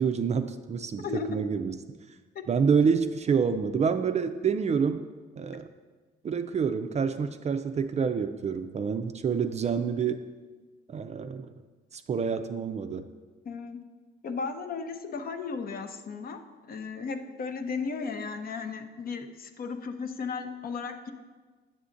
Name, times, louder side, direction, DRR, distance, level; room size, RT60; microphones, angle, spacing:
voice 1, 0.0-1.7 2.5-5.0 5.4-5.7 6.2-10.2 10.9-11.5 11.9-13.1, right 6 dB, 35° right, 9 dB, 0.3 m, -27 dB
voice 2, 1.0-1.4 2.3-2.4 13.5-13.8 14.2-21.1, left 5 dB, 50° left, 7 dB, 0.6 m, -35 dB
7.4 x 6.8 x 2.5 m, 1.4 s
cardioid pair, 90°, 20 cm